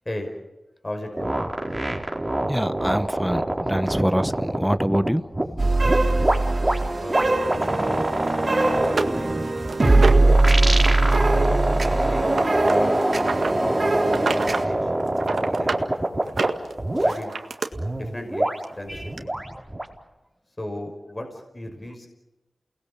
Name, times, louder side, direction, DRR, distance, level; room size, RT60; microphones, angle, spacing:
voice 1, 0.8-1.4 7.0-9.4 9.8-10.0 11.3-13.0 13.5-14.9 15.2-16.0 16.2-16.5 17.0-17.3 17.9-19.3 20.6-22.1, left 1 dB, 30° left, 4 dB, 5.4 m, -35 dB
sound 1, 1.2-5.4 5.8-16.5 16.8-17.2 17.7-19.9, right 1 dB, 20° right, 4.5 m, -25 dB
voice 2, 2.5-5.7 7.7-8.4 18.9-19.1 19.5-19.6, equal, ahead, 12 dB, 1.1 m, -26 dB
sound 2, 5.6-14.6, right 2 dB, 55° right, 3.4 m, -21 dB
Tossing a book around, 8.3-8.4 8.8-10.4 10.8-11.2 11.4-13.5 14.0-14.7 15.0-15.8 16.2-17.7 18.6-18.7 19.2-19.3, right 4 dB, 85° right, 1.9 m, -28 dB
29.0 x 20.0 x 7.4 m, 1.1 s
cardioid pair, 50°, 0 cm